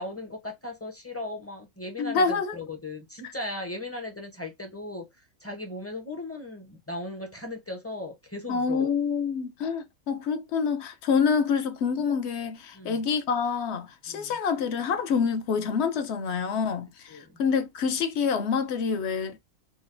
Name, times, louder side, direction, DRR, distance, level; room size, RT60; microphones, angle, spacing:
voice 1, 0.0-5.1 5.4-8.9 12.7-13.0 14.1-14.4 17.1-17.3, left 2 dB, 15° left, 0.6 m, -37 dB
voice 2, 2.0-2.6 3.2-3.3 8.5-19.4, left 6 dB, 60° left, 0.8 m, -27 dB
4.0 x 2.1 x 2.4 m
omnidirectional pair, 1.4 m